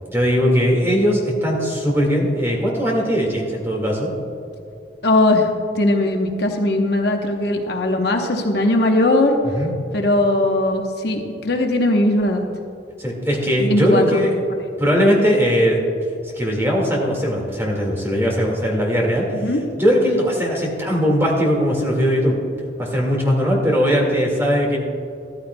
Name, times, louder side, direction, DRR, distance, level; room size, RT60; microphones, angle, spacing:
voice 1, 0.1-4.1 9.5-9.9 13.0-14.3 14.8-15.8 16.4-19.3 19.8-22.3 22.8-24.8, equal, 15° right, -2 dB, 1.8 m, -19 dB
voice 2, 5.0-5.5 5.7-9.4 9.9-12.4 13.6-14.3 19.4-19.6, left 1 dB, 65° left, 3 dB, 0.9 m, -19 dB
13.5 x 13.0 x 2.2 m, 2.6 s
head